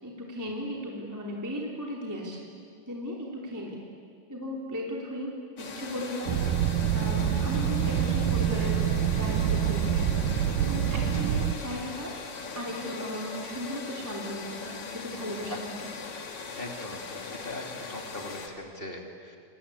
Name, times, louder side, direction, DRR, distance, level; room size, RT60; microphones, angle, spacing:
voice 1, 0.0-2.5 2.9-3.8 4.3-6.3 6.9-12.1 12.5-15.9, equal, 5° right, -2 dB, 2.7 m, -36 dB
sound 1, 5.6-18.5, left 4 dB, 45° left, 2.3 m, -40 dB
sound 2, 6.3-11.5, right 9 dB, 70° right, 2.1 m, -26 dB
voice 2, 16.6-19.4, left 1 dB, 15° left, 2 dB, 2.4 m, -40 dB
28.5 x 24.5 x 8.5 m, 2.2 s
omnidirectional pair, 4.6 m